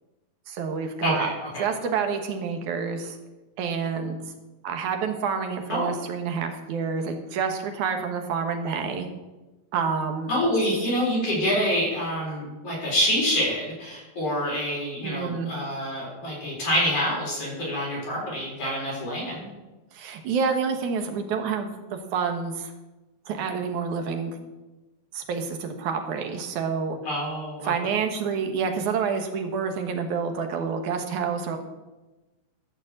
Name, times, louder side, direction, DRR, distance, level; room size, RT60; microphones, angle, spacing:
voice 1, 0.5-1.3 1.6-3.2 3.6-4.2 4.6-9.1 9.7-10.3 10.6-10.7 15.0-15.5 19.9-22.7 23.3-24.4 25.1-27.0 27.6-31.6, right 6 dB, 65° right, 5 dB, 2.4 m, -28 dB
voice 2, 1.0-1.6 5.7-5.9 10.3-19.4 27.0-27.7, equal, 40° left, -4 dB, 5.0 m, -26 dB
13.5 x 6.2 x 7.6 m, 1.1 s
omnidirectional pair, 4.1 m